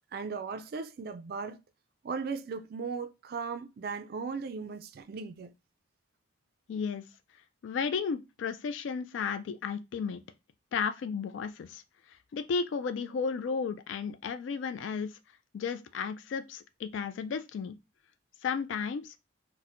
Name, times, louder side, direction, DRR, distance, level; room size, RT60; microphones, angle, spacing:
voice 1, 0.1-1.6 2.0-5.5, right 5 dB, 50° right, 0.3 m, -37 dB
voice 2, 6.7-7.0 7.6-10.2 10.7-11.8 12.3-15.2 15.5-17.7 18.4-19.1, left 5 dB, 70° left, 0.3 m, -33 dB
4.2 x 2.1 x 2.5 m
head